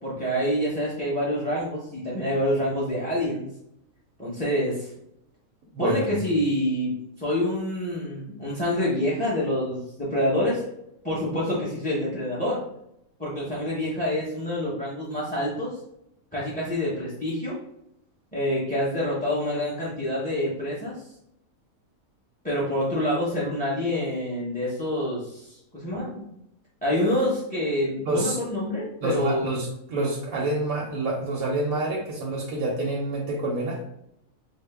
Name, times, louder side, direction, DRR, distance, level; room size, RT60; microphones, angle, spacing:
voice 1, 0.0-3.5 4.2-4.9 5.8-6.9 7.2-10.6 11.0-12.6 13.2-15.7 16.3-17.6 18.3-21.0 22.4-26.3 26.8-29.5, left 1 dB, 10° left, -6 dB, 0.7 m, -27 dB
voice 2, 5.7-6.3 28.1-28.4 29.0-33.8, right 2 dB, 90° right, -2 dB, 1.1 m, -27 dB
4.7 x 2.0 x 3.3 m, 0.77 s
omnidirectional pair, 1.5 m